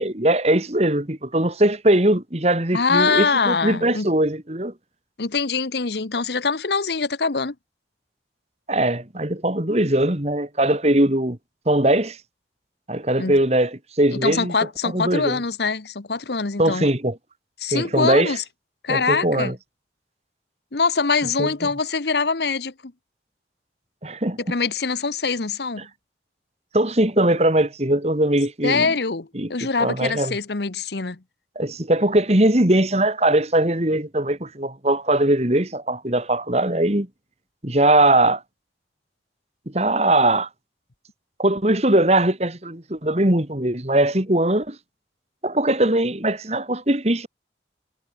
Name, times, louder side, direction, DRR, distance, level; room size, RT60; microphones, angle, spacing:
voice 1, 0.0-4.7 8.7-11.4 11.7-12.2 12.9-14.5 14.9-15.4 16.6-17.2 17.7-18.4 18.9-19.6 21.4-21.5 24.0-24.5 26.7-28.9 29.3-30.4 31.6-37.1 37.6-38.4 39.7-40.5 41.4-44.8 45.4-47.3, right 1 dB, 35° right, 2.3 m, -20 dB
voice 2, 2.7-4.1 5.2-7.5 13.2-13.4 14.1-16.9 17.6-18.4 18.8-19.5 20.7-22.9 24.4-25.9 28.6-31.2, left 4 dB, 70° left, 1.1 m, -24 dB
head